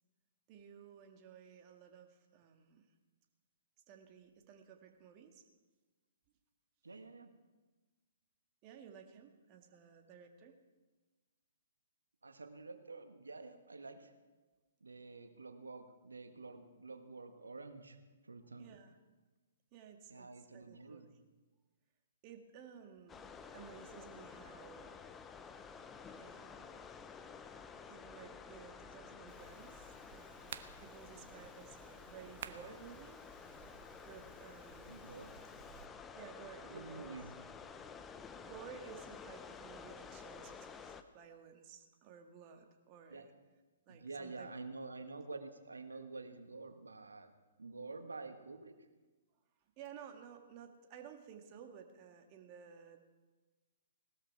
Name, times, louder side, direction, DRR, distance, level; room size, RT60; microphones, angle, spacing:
voice 1, 0.5-2.9 3.9-5.4 8.6-10.6 18.6-19.0 19.7-21.0 22.2-23.3 23.5-24.9 26.1-26.8 27.9-33.2 33.6-33.7 34.0-35.1 36.1-37.5 38.4-43.3 43.9-44.5 45.9-46.0 49.8-53.1, right 7 dB, 35° right, 4 dB, 1.9 m, -55 dB
voice 2, 6.8-7.3 12.2-14.1 14.8-18.0 18.3-18.8 20.1-21.1 34.9-35.3 36.7-37.3 43.1-43.2 43.9-47.3 47.6-48.7, right 3 dB, 85° right, 7 dB, 1.6 m, -49 dB
sound 1, 23.1-41.0, left 6 dB, 15° left, 0.8 m, -52 dB
sound 2, 29.3-35.9, right 9 dB, 55° right, 0.9 m, -55 dB
18.5 x 13.0 x 4.7 m, 1.2 s
figure-of-eight pair, 130°, 0 cm